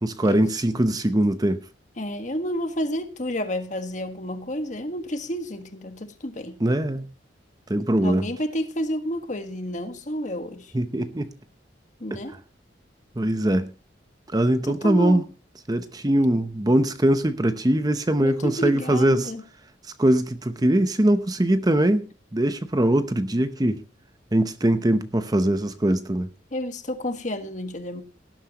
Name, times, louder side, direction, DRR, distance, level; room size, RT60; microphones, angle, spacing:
voice 1, 0.0-1.6 6.6-7.1 7.7-8.3 10.7-11.3 12.1-12.2 13.2-13.7 14.3-15.2 15.7-19.3 20.0-22.1 22.3-23.8 24.3-26.3, right 1 dB, 20° right, 0.7 m, -22 dB
voice 2, 2.0-6.6 8.0-10.7 12.0-12.3 14.7-15.2 18.2-19.4 26.5-28.0, equal, 40° left, 1.6 m, -30 dB
18.0 x 11.5 x 3.0 m
head